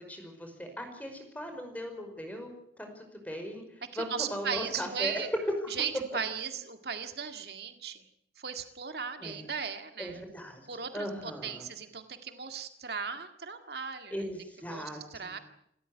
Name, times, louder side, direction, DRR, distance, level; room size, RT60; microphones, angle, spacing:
voice 1, 0.0-3.6 4.0-5.2 5.6-5.7 9.2-9.4 10.0-10.7 10.9-11.7 14.1-15.4, equal, 10° left, 5 dB, 5.2 m, -39 dB
voice 2, 3.9-5.3 5.7-8.0 8.4-10.2 10.7-14.1 14.7-15.4, right 6 dB, 65° right, 8 dB, 1.9 m, -37 dB
27.5 x 14.0 x 9.8 m, 0.74 s
head